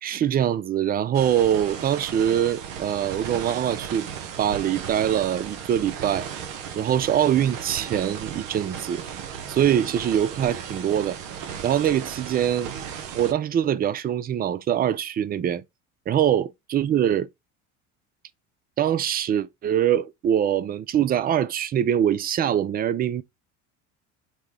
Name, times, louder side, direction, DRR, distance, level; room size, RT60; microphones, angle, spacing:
voice 1, 0.0-4.1 4.4-6.3 6.8-9.0 9.5-11.2 11.6-12.7 13.1-15.6 16.1-17.3 18.8-23.2, right 10 dB, 25° right, 0.4 m, -23 dB
sound 1, 1.1-13.3, right 8 dB, 75° right, 0.9 m, -36 dB
5.2 x 2.1 x 3.5 m
hypercardioid pair, 75°, 38 cm